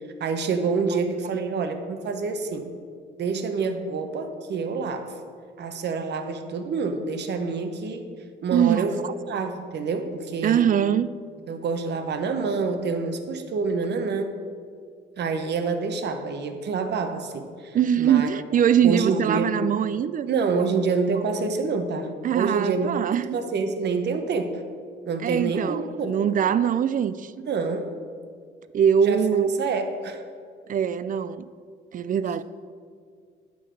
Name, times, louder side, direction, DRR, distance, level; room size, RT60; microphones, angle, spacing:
voice 1, 0.2-2.7 3.2-5.2 5.6-8.1 8.4-10.7 11.5-14.3 15.2-18.3 18.8-19.6 20.3-24.6 25.0-26.2 27.5-27.9 29.0-29.3 29.6-30.2, right 4 dB, 60° right, 0.9 m, -27 dB
voice 2, 8.5-9.1 10.4-11.1 17.7-20.3 22.2-23.4 25.2-27.3 28.7-29.6 30.7-31.5 31.9-32.4, right 8 dB, 45° right, 0.4 m, -22 dB
9.7 x 3.9 x 6.7 m
cardioid pair, 90°, 20 cm